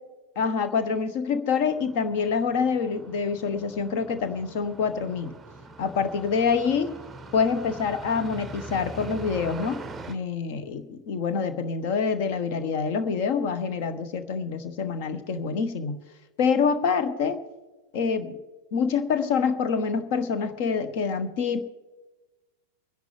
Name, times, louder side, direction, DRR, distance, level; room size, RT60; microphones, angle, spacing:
voice 1, 0.3-5.4 5.8-6.9 7.3-9.8 10.1-16.0 16.4-17.4 17.9-18.4 18.7-21.6, left 5 dB, 50° left, 10 dB, 1.2 m, -26 dB
sound 1, 1.6-10.1, right 3 dB, 10° right, 0.8 m, -42 dB
25.0 x 10.5 x 3.4 m, 1.2 s
figure-of-eight pair, 90°, 0 cm